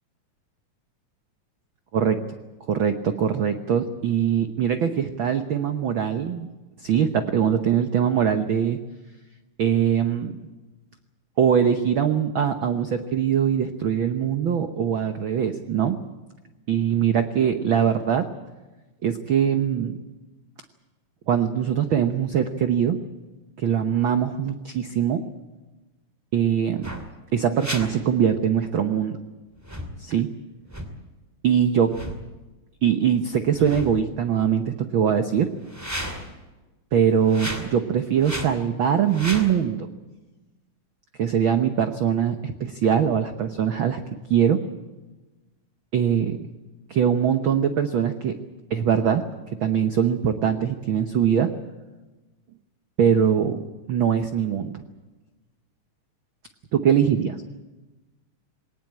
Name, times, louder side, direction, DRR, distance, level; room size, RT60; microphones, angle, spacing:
voice 1, 2.7-6.5 6.8-8.8 9.6-10.3 11.4-16.0 16.7-18.2 19.0-20.0 21.3-23.0 23.6-25.2 26.3-27.0 27.3-29.2 30.0-30.3 31.4-31.9 32.8-35.5 36.9-39.9 41.2-44.0 44.3-44.6 45.9-46.5 46.9-48.3 48.7-49.2 49.6-51.5 53.0-53.6 53.9-54.8 56.7-57.5, right 8 dB, 85° right, 8 dB, 1.1 m, -22 dB
sound 1, 26.8-27.1 27.6-27.9 29.6-29.9 30.7-30.9 31.9-32.3 33.4-34.2 35.6-36.3 37.2-37.7 38.2-38.5 39.0-39.5, equal, 5° right, 1.8 m, -34 dB
20.5 x 19.0 x 8.8 m, 1.1 s
omnidirectional pair, 3.8 m